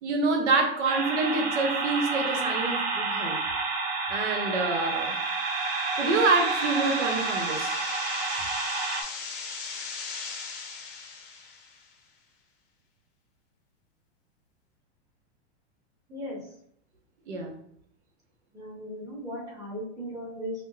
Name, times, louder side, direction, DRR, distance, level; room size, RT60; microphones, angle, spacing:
voice 1, 0.0-3.4 4.1-5.1 6.0-7.8 17.3-17.5, right 3 dB, 85° right, 3 dB, 1.0 m, -27 dB
sound 1, 0.8-9.0, right 4 dB, 55° right, 0.7 m, -29 dB
sound 2, 4.9-11.9, left 5 dB, 30° left, 0.6 m, -39 dB
voice 2, 18.5-20.5, equal, 10° right, -5 dB, 0.9 m, -37 dB
5.2 x 2.1 x 2.2 m, 0.67 s
supercardioid pair, 150°, 34 cm